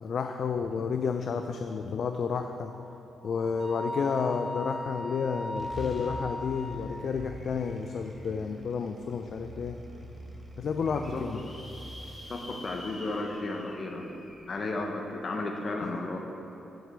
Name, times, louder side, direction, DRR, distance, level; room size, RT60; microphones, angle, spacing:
voice 1, 0.0-2.7 3.2-9.8 10.6-11.4, left 5 dB, 60° left, 6 dB, 0.3 m, -31 dB
Wind instrument woodwind instrument, 2.6-6.9, left 1 dB, 45° right, 1.4 m, -38 dB
sound 1, 5.6-12.4, right 1 dB, 20° right, 1.2 m, -44 dB
sound 2, 6.7-8.5 9.1-9.2 9.6-9.7 9.8-9.9 10.5-15.1, left 1 dB, 25° left, 1.6 m, -50 dB
voice 2, 10.9-11.3 12.3-14.1 14.5-16.2, left 2 dB, 45° left, 2 dB, 0.9 m, -34 dB
7.8 x 5.0 x 6.7 m, 3.0 s
cardioid pair, 80°, 0 cm